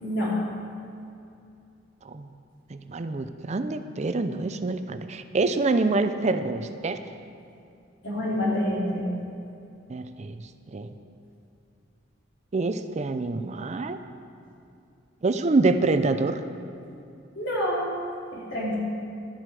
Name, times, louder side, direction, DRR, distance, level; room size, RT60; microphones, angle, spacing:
voice 1, 0.0-0.4 8.0-9.0 17.3-17.9 18.3-18.8, left 1 dB, 80° left, -6 dB, 3.0 m, -27 dB
voice 2, 2.7-7.0 9.9-10.4 10.7-10.9 12.5-14.0 15.2-16.4, right 3 dB, 40° right, 10 dB, 0.5 m, -26 dB
12.0 x 7.7 x 4.9 m, 2.6 s
head